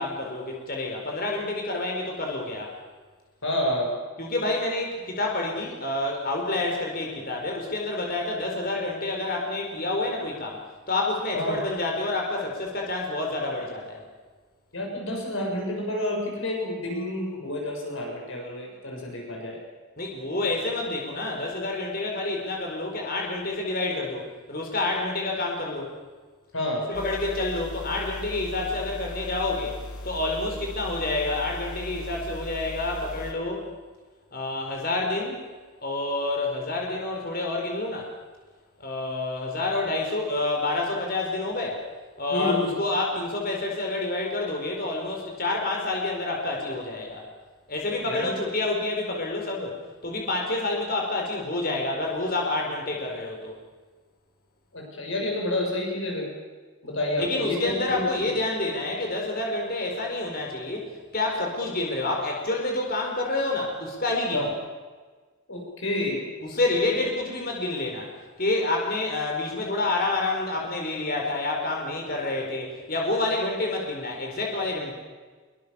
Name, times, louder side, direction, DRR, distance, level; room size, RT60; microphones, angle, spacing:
voice 1, 0.0-2.7 4.2-14.0 20.0-25.9 26.9-29.7 30.0-33.7 34.3-35.4 35.8-38.1 38.8-41.8 42.2-47.2 47.7-49.8 50.0-53.5 57.2-64.5 66.4-68.1 68.4-74.9, left 2 dB, 40° left, 1 dB, 4.7 m, -28 dB
voice 2, 3.4-3.9 11.3-11.6 14.7-19.6 26.5-26.8 42.3-42.7 48.1-48.3 54.7-56.3 56.8-58.3 64.3-64.5 65.5-66.3, left 1 dB, 60° left, 0 dB, 7.5 m, -29 dB
sound 1, 26.9-33.3, left 1 dB, 85° left, 3.6 m, -38 dB
25.0 x 24.0 x 7.2 m, 1.4 s
head